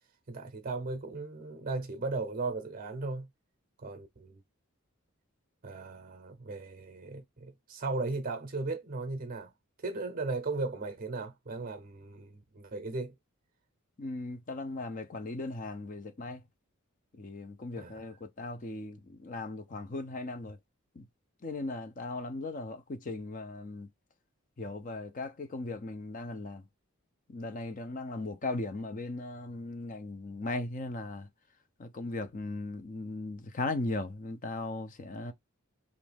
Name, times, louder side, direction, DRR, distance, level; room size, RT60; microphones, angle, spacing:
voice 1, 0.3-3.3 3.8-4.4 5.6-9.5 9.8-13.1 17.8-18.0, right 3 dB, 40° right, 0.6 m, -36 dB
voice 2, 14.0-16.4 17.2-20.6 21.0-21.1 21.4-23.9 24.6-26.6 27.3-31.3 31.8-35.3, left 2 dB, 40° left, 0.5 m, -38 dB
3.1 x 2.5 x 3.3 m
head